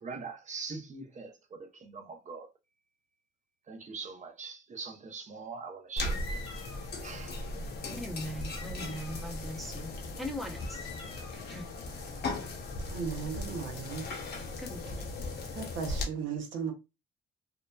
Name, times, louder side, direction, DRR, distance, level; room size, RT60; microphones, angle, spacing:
voice 1, 0.0-2.5 3.7-6.2 7.0-7.5, right 4 dB, 35° right, 0.7 m, -42 dB
sound 1, 6.0-16.0, left 2 dB, 55° left, 0.7 m, -38 dB
sound 2, 6.0-6.9 7.4-7.5 8.4-9.2 10.0-10.1 10.5-11.4, left 3 dB, 25° left, 0.9 m, -46 dB
voice 2, 7.9-10.9 11.3-11.7 14.6-15.2, equal, ahead, 0.6 m, -40 dB
voice 3, 12.9-14.1 15.6-16.7, right 6 dB, 75° right, 0.7 m, -36 dB
2.7 x 2.2 x 2.2 m
cardioid pair, 90°, 20 cm